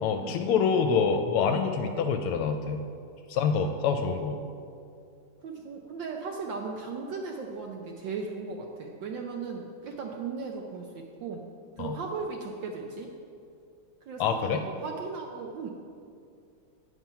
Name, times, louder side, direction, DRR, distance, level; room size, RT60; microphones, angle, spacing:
voice 1, 0.0-2.8 3.3-4.4 11.8-12.0 14.2-14.6, left 6 dB, 80° left, 6 dB, 1.5 m, -26 dB
voice 2, 5.4-11.4 11.8-13.1 14.1-15.7, right 4 dB, 70° right, 1 dB, 1.2 m, -37 dB
9.2 x 5.9 x 5.6 m, 2.4 s
omnidirectional pair, 2.4 m